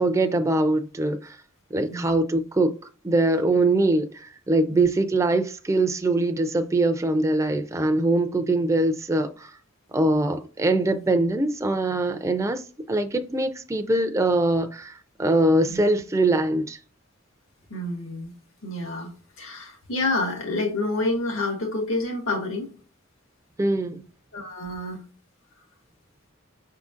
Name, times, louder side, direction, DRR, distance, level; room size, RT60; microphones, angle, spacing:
voice 1, 0.0-1.4 1.7-2.7 3.0-9.5 9.9-12.6 12.9-16.8 23.6-24.0, right 2 dB, 15° right, 0.4 m, -23 dB
voice 2, 17.7-18.3 18.6-22.7 24.3-25.0, left 2 dB, 80° left, 1.8 m, -28 dB
5.6 x 3.7 x 2.5 m
head